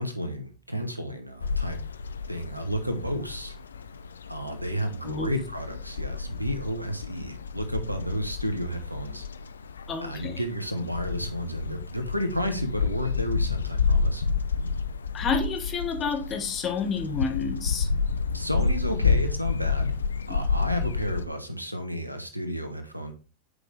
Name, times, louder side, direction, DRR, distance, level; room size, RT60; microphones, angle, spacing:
voice 1, 0.0-1.8 2.3-3.6 4.3-9.2 10.0-14.2 18.3-19.9 20.3-23.1, equal, 90° right, 7 dB, 1.0 m, -32 dB
sound 1, 1.4-21.2, left 5 dB, 70° left, 0.4 m, -30 dB
voice 2, 9.9-10.4 15.1-17.9 20.3-20.4, left 5 dB, 25° left, 6 dB, 1.3 m, -30 dB
8.0 x 5.1 x 3.3 m, 0.36 s
figure-of-eight pair, 90°, 0 cm